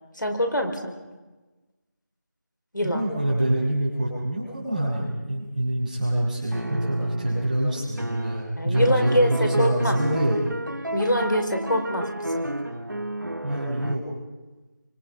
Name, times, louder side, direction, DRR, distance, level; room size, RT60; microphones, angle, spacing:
voice 1, 0.1-0.9 2.7-3.0 8.6-9.9 10.9-12.4, equal, 85° left, 4 dB, 4.6 m, -24 dB
voice 2, 2.8-10.4 13.4-14.0, right 1 dB, 25° right, -4 dB, 6.5 m, -25 dB
sound 1, 6.5-7.6 8.0-14.0, right 1 dB, 85° right, 1.6 m, -31 dB
26.5 x 25.0 x 5.5 m, 1.2 s
figure-of-eight pair, 170°, 10 cm